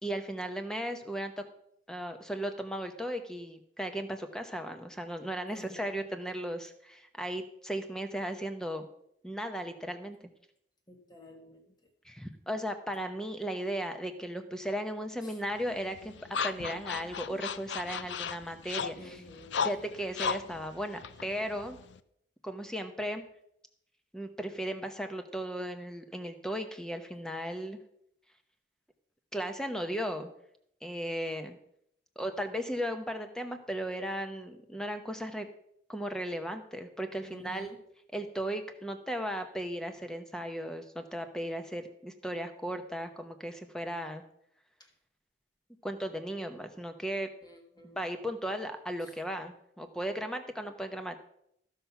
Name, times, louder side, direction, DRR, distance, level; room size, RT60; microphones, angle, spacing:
voice 1, 0.0-1.4 1.9-8.9 9.2-10.2 12.0-16.1 16.4-19.2 19.6-21.8 22.4-23.3 24.1-27.8 29.3-30.3 30.8-31.6 32.2-35.5 35.9-37.7 38.1-44.2 45.8-47.3 47.8-51.2, equal, 5° left, 7 dB, 0.8 m, -36 dB
voice 2, 5.5-6.1 10.9-11.9 15.2-15.4 19.0-19.7 37.2-37.8 44.8-44.9 47.4-48.1 49.0-49.2, equal, 20° left, 3 dB, 1.6 m, -51 dB
sound 1, 15.5-22.0, left 6 dB, 75° left, 0.5 m, -36 dB
14.0 x 5.7 x 5.7 m, 0.75 s
head